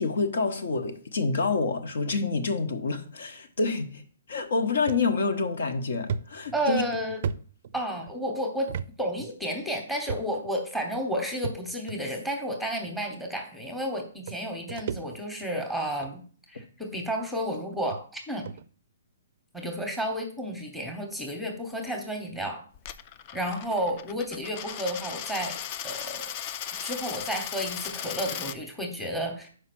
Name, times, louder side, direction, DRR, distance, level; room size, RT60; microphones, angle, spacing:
voice 1, 0.0-4.0 4.3-6.8, left 4 dB, 75° left, 1.1 m, -27 dB
sound 1, 4.9-5.1 5.5-5.6 6.1-8.1 8.7-8.9 9.2-9.3 10.1-10.5 11.4-12.0 12.9-13.0 13.9-14.0 14.3-15.5 15.9-16.2 16.9-17.0 17.5-17.6 17.9-18.0 18.4-18.6, right 6 dB, 45° right, 0.4 m, -35 dB
voice 2, 6.5-7.2 7.7-8.7 9.0-16.2 16.5-18.4 19.5-22.6 23.3-25.6 25.8-26.2 26.8-29.5, equal, ahead, 1.0 m, -31 dB
Coin (dropping), 22.7-28.6, left 9 dB, 30° left, 0.3 m, -37 dB
5.8 x 4.9 x 6.1 m
hypercardioid pair, 165°, 0 cm